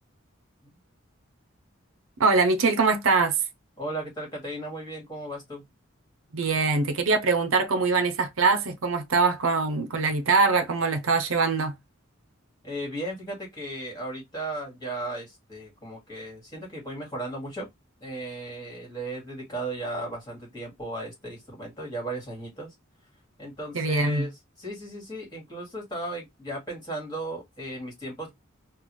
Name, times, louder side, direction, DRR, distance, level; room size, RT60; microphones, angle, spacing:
voice 1, 2.2-3.4 6.3-11.7 23.7-24.3, right 4 dB, 75° right, 0.7 m, -23 dB
voice 2, 3.8-5.6 12.6-17.7 18.0-22.7 23.4-24.3 24.6-28.3, right 1 dB, 20° left, 2.0 m, -36 dB
3.9 x 2.4 x 3.1 m
head